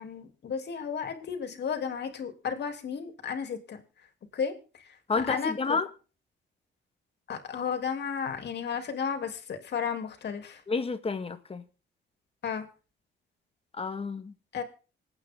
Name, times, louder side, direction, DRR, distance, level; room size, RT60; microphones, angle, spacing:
voice 1, 0.0-3.8 4.3-4.5 5.3-5.8 7.3-10.6 12.4-12.6 14.5-14.6, left 6 dB, 60° left, 3.1 m, -33 dB
voice 2, 5.1-5.9 10.7-11.6 13.8-14.3, left 4 dB, 30° left, 1.7 m, -30 dB
26.0 x 9.0 x 3.7 m
cardioid pair, 90°, 20 cm